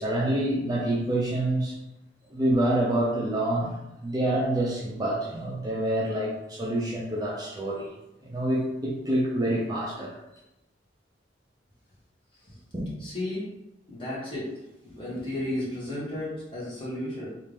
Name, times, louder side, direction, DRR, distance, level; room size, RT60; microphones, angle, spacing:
voice 1, 0.0-1.8 2.3-3.8 4.0-7.9 8.2-10.2 12.7-12.9, right 1 dB, 20° right, -5 dB, 0.5 m, -27 dB
voice 2, 13.0-13.5 13.9-14.5 14.8-17.3, left 1 dB, 30° left, -7 dB, 1.3 m, -33 dB
3.1 x 2.5 x 3.5 m, 0.90 s
head